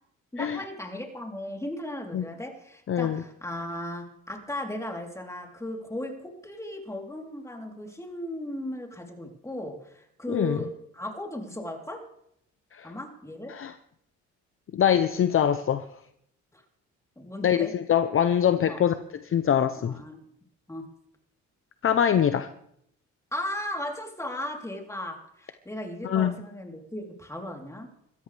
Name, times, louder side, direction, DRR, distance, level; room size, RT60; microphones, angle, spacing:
voice 1, 0.3-12.0 12.8-13.5 16.5-16.6 17.2-17.7 18.7-18.8 19.8-20.2 20.7-20.8 23.3-27.9, left 1 dB, 10° left, 3.5 m, -36 dB
voice 2, 2.9-3.2 10.3-10.6 12.7-12.9 13.5-13.7 14.7-15.9 17.4-19.0 19.2-20.0 21.8-22.5 26.0-26.4, left 9 dB, 45° left, 0.8 m, -23 dB
25.0 x 14.0 x 3.4 m
cardioid pair, 90°, 30 cm